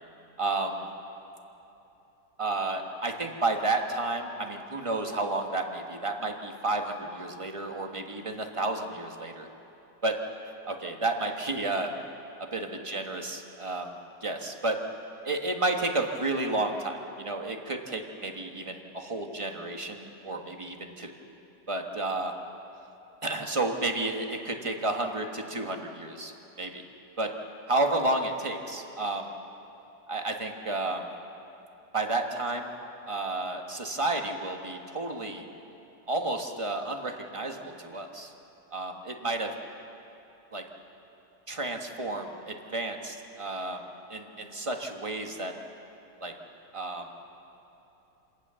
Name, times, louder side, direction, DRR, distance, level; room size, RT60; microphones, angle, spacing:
voice 1, 0.4-0.9 2.4-9.5 10.0-10.2 10.7-11.9 12.4-13.9 14.2-14.8 15.2-21.1 21.7-22.3 23.2-26.3 26.6-26.8 27.2-27.3 27.7-29.3 30.1-31.1 31.9-32.7 33.1-35.5 36.1-38.3 38.7-39.5 40.5-40.6 41.5-45.5 46.2-46.3 46.7-47.0, right 2 dB, 20° right, 3 dB, 1.5 m, -31 dB
27.0 x 18.0 x 7.0 m, 2.9 s
omnidirectional pair, 1.7 m